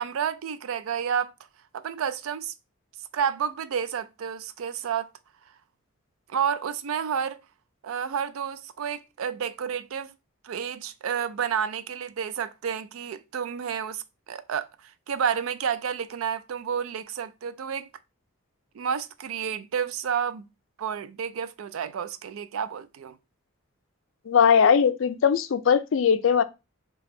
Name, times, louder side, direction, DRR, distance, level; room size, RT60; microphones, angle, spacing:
voice 1, 0.0-1.3 1.7-2.5 3.1-5.1 6.3-7.4 7.8-10.1 10.4-17.9 18.7-20.5 20.8-23.2, right 7 dB, 75° right, 0.4 m, -30 dB
voice 2, 24.3-26.4, left 7 dB, 65° left, 0.4 m, -20 dB
3.4 x 2.2 x 3.7 m
head